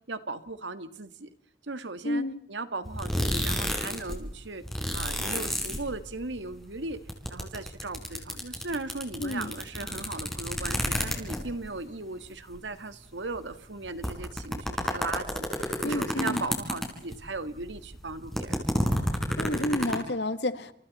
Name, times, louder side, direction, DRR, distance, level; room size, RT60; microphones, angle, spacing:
voice 1, 0.1-1.3 1.6-7.0 7.3-18.6, right 3 dB, 90° right, 11 dB, 1.8 m, -37 dB
voice 2, 2.0-2.4 9.2-9.5 15.8-16.4 19.4-20.7, left 1 dB, 70° left, 12 dB, 1.5 m, -30 dB
sound 1, 2.8-4.2 4.4-6.4 6.6-11.6 12.2-12.3 12.5-12.6 13.3-13.4 13.8-17.3 17.6-20.0, equal, ahead, 4.8 m, -30 dB
28.5 x 28.5 x 4.2 m, 0.64 s
head